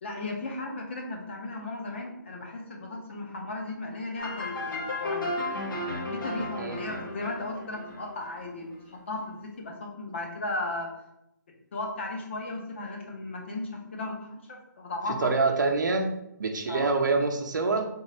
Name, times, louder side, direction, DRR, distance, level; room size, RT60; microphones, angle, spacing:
voice 1, 0.0-5.4 6.1-10.9 11.7-15.3 16.7-16.9, left 2 dB, 35° left, 1 dB, 0.7 m, -36 dB
sound 1, 4.2-8.8, left 2 dB, 85° left, 1.3 m, -34 dB
voice 2, 15.1-16.1 16.4-17.9, right 3 dB, 65° right, 3 dB, 0.7 m, -26 dB
3.6 x 2.5 x 4.1 m, 0.83 s
hypercardioid pair, 170°, 11 cm